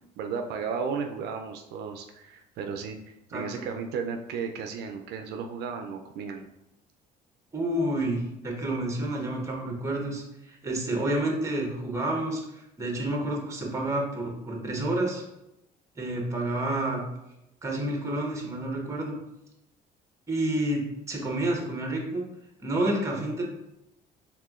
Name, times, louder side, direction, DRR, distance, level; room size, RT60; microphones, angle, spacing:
voice 1, 0.2-6.5, right 5 dB, 75° right, 4 dB, 0.4 m, -34 dB
voice 2, 7.5-15.2 16.0-17.0 17.6-19.2 20.3-22.2 22.6-23.4, right 1 dB, 15° right, 0 dB, 1.0 m, -29 dB
4.7 x 3.5 x 2.4 m, 0.88 s
cardioid pair, 110°, 17 cm